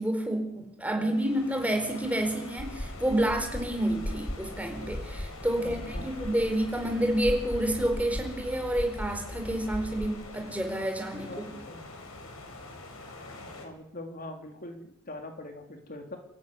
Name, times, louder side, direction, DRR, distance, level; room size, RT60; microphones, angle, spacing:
voice 1, 0.0-11.6, right 1 dB, 5° right, 3 dB, 4.7 m, -29 dB
sound 1, 1.0-13.7, left 2 dB, 85° left, 5.6 m, -45 dB
sound 2, 2.6-10.1, equal, 60° left, 4.4 m, -39 dB
voice 2, 5.6-6.1 11.3-11.8 13.4-16.2, left 1 dB, 40° left, 3 dB, 3.4 m, -43 dB
29.5 x 15.0 x 9.8 m, 0.82 s
head